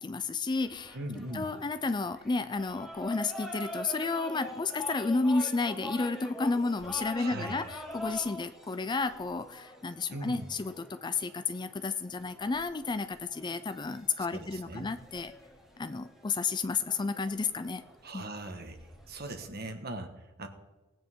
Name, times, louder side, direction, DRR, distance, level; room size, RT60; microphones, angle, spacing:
voice 1, 0.0-1.0 1.3-15.3 15.8-17.8 18.1-18.2, left 3 dB, 20° left, 12 dB, 0.4 m, -32 dB
sound 1, 0.7-19.5, left 1 dB, ahead, 1.6 m, -45 dB
voice 2, 0.9-1.5 7.2-7.6 10.1-10.5 14.2-14.9 18.0-18.8 19.1-20.5, right 1 dB, 50° right, 5 dB, 1.5 m, -40 dB
18.5 x 9.1 x 3.7 m, 1.2 s
head